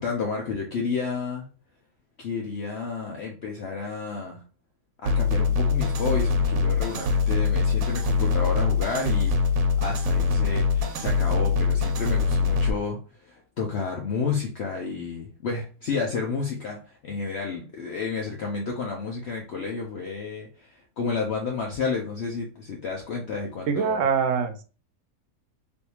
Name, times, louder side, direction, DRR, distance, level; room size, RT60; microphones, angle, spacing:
voice 1, 0.0-1.5 2.2-4.4 5.0-9.4 9.8-24.0, left 4 dB, 60° left, 0 dB, 0.7 m, -31 dB
sound 1, 5.1-12.7, left 5 dB, 85° right, 1.1 m, -23 dB
voice 2, 23.7-24.6, right 6 dB, 70° right, 6 dB, 0.9 m, -24 dB
3.4 x 2.6 x 2.8 m, 0.35 s
omnidirectional pair, 1.6 m